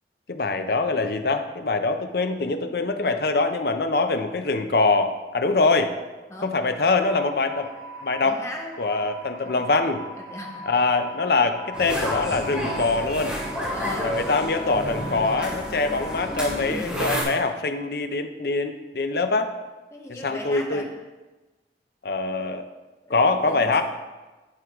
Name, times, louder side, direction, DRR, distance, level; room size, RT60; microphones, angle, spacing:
voice 1, 0.3-5.9 6.4-7.7 8.0-8.4 8.8-10.0 10.7-13.4 14.0-19.5 20.1-20.9 22.0-22.6 23.1-23.8, left 3 dB, 60° left, 7 dB, 0.6 m, -24 dB
sound 1, 6.7-16.6, equal, 25° right, 1.9 m, -41 dB
voice 2, 8.2-8.8 9.4-9.6 10.2-10.7 13.7-14.2 19.9-20.9 23.1-23.8, left 1 dB, 15° left, 1 dB, 0.9 m, -38 dB
sound 2, 11.7-17.2, equal, 5° right, 2.0 m, -30 dB
11.5 x 4.6 x 3.6 m, 1.2 s
head